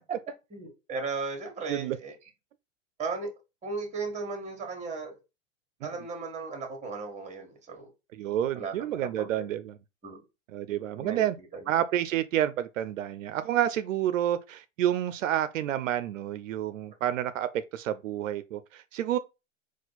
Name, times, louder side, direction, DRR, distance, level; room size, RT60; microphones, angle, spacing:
voice 1, 0.5-2.1 3.0-3.3 3.6-5.2 5.8-7.9 8.5-9.5 10.0-10.2 10.9-11.7, right 4 dB, 20° right, 1.3 m, -36 dB
voice 2, 8.2-9.7 10.5-11.4 11.7-19.2, right 11 dB, 80° right, 0.5 m, -29 dB
4.3 x 2.4 x 3.9 m
hypercardioid pair, 115°, 38 cm